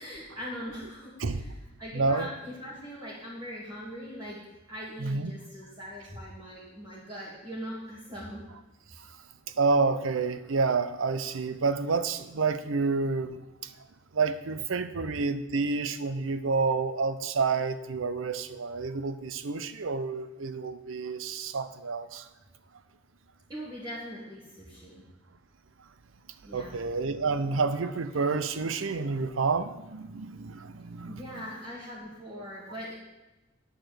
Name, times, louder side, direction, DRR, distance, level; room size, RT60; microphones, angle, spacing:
voice 1, 0.0-1.5 1.8-4.4 4.7-8.4 23.5-25.0 26.4-26.8 31.1-32.9, equal, 20° right, -8 dB, 2.0 m, -41 dB
voice 2, 1.9-2.3 5.0-5.3 9.0-9.1 9.6-13.7 14.1-22.3 26.5-31.4, right 4 dB, 90° right, 12 dB, 0.6 m, -29 dB
8.8 x 4.9 x 7.6 m, 1.0 s
head